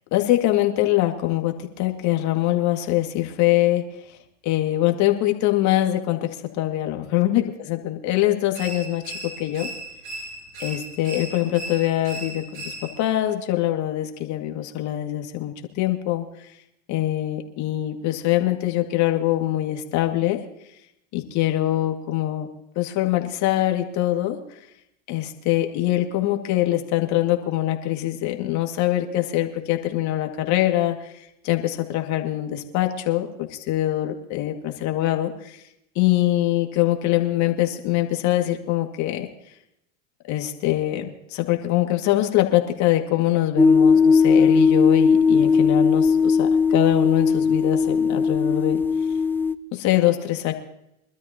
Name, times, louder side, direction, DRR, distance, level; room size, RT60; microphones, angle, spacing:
voice 1, 0.1-4.2 4.4-9.7 10.6-16.5 16.9-20.4 21.1-22.5 22.8-24.6 25.1-35.6 36.0-39.3 40.3-48.8 49.7-50.5, left 14 dB, 50° left, 4 dB, 2.2 m, -23 dB
sound 1, 8.5-13.2, right 2 dB, 80° right, 7.6 m, -37 dB
sound 2, 43.6-49.5, left 5 dB, 5° left, 0.5 m, -18 dB
24.0 x 13.0 x 2.9 m, 0.80 s
hypercardioid pair, 100°, 36 cm